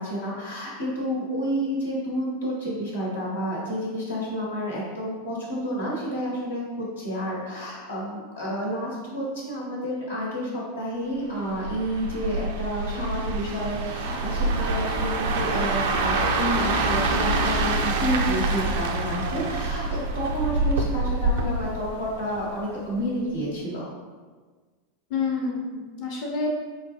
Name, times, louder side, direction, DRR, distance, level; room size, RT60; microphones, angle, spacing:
voice 1, 0.0-23.9, equal, 80° left, -5 dB, 1.3 m, -30 dB
sound 1, 11.5-22.6 22.9-23.2, right 2 dB, 65° right, 0.4 m, -26 dB
voice 2, 25.1-26.5, left 4 dB, 50° left, -1 dB, 0.9 m, -28 dB
5.6 x 2.3 x 3.0 m, 1.4 s
hypercardioid pair, 90°, 0 cm